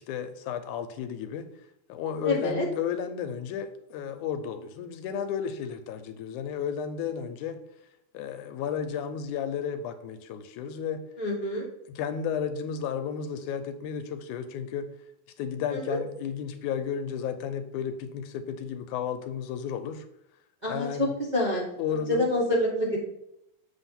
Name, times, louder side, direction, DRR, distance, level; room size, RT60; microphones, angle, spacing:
voice 1, 0.0-1.5 1.9-7.6 8.1-11.1 11.9-14.9 15.4-20.1 20.7-21.1 21.8-22.3, left 7 dB, 80° left, 9 dB, 2.0 m, -33 dB
voice 2, 2.2-2.7 11.2-11.7 15.7-16.0 20.6-23.0, left 1 dB, 80° right, -6 dB, 0.4 m, -27 dB
7.5 x 3.5 x 5.7 m, 0.80 s
omnidirectional pair, 3.6 m